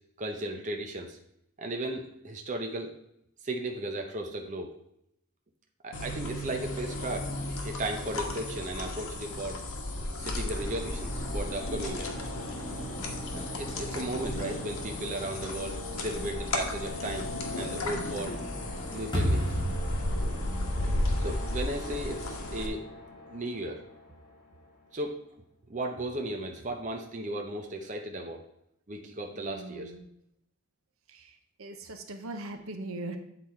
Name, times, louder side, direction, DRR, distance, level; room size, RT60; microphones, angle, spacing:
voice 1, 0.2-1.2 1.6-2.9 3.4-4.7 5.8-9.6 10.2-12.1 13.3-17.3 17.6-18.3 18.9-19.6 21.2-22.8 23.3-23.8 24.9-25.2 25.7-28.4 28.9-29.9, right 1 dB, 35° right, 3 dB, 0.6 m, -35 dB
sound 1, 5.9-22.7, left 1 dB, 80° left, 1.2 m, -34 dB
sound 2, 10.3-25.0, left 1 dB, 40° left, 1.7 m, -43 dB
sound 3, 19.1-22.2, equal, 20° left, 1.3 m, -32 dB
voice 2, 29.3-30.1 31.1-33.2, right 2 dB, 75° right, 7 dB, 0.8 m, -40 dB
8.4 x 4.0 x 4.4 m, 0.78 s
head